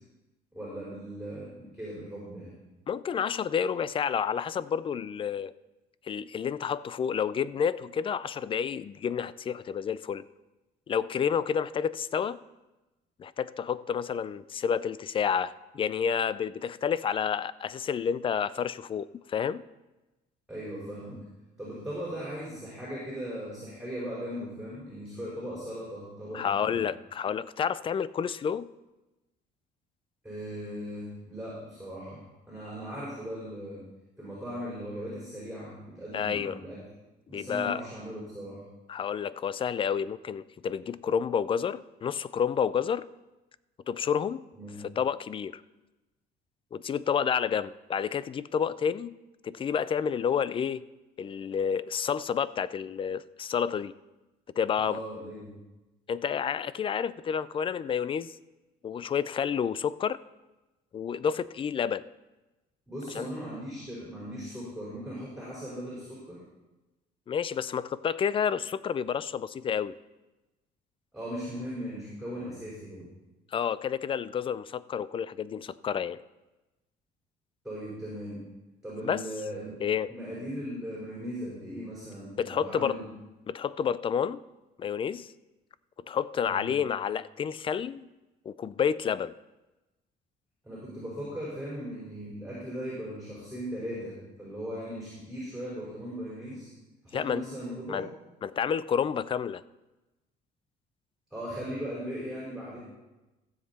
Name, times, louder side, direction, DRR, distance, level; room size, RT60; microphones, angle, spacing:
voice 1, 0.5-2.6 20.5-21.2 21.6-26.8 30.2-33.8 34.2-36.8 37.3-38.6 44.5-44.8 54.8-55.5 62.9-66.4 71.1-73.1 77.6-78.4 78.8-79.8 80.1-83.1 86.4-86.7 90.6-96.7 97.0-98.1 101.3-102.8, equal, 5° right, -7 dB, 4.4 m, -38 dB
voice 2, 2.9-5.5 6.0-10.2 10.9-12.4 13.2-19.6 26.3-28.7 36.1-36.6 37.3-37.8 38.9-43.1 43.9-44.4 45.0-45.6 46.7-49.1 49.4-50.8 51.2-53.9 54.6-55.0 56.1-58.3 58.8-60.2 60.9-62.0 63.2-63.3 67.3-70.0 73.5-76.2 79.0-79.2 79.8-80.1 82.4-83.0 83.5-84.4 84.8-85.3 86.1-88.1 88.5-89.3 97.1-97.5 97.9-98.1 98.4-99.6, left 7 dB, 30° left, 18 dB, 0.4 m, -30 dB
15.5 x 7.4 x 4.2 m, 1.1 s
cardioid pair, 110°, 17 cm